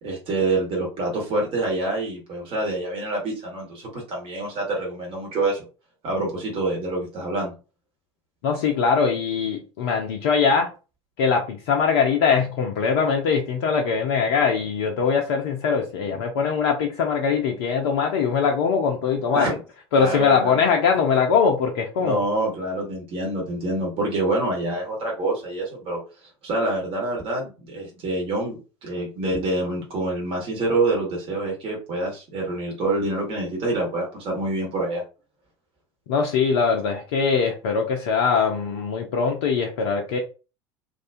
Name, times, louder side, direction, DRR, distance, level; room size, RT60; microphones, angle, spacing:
voice 1, 0.0-5.6 6.0-7.5 19.3-19.6 20.0-20.6 22.0-26.0 26.4-35.0, right 2 dB, 35° right, 1.0 m, -26 dB
voice 2, 8.4-10.7 11.2-19.5 19.9-22.2 36.1-40.2, left 5 dB, 55° left, 0.4 m, -22 dB
2.3 x 2.2 x 2.5 m
figure-of-eight pair, 70°, 15 cm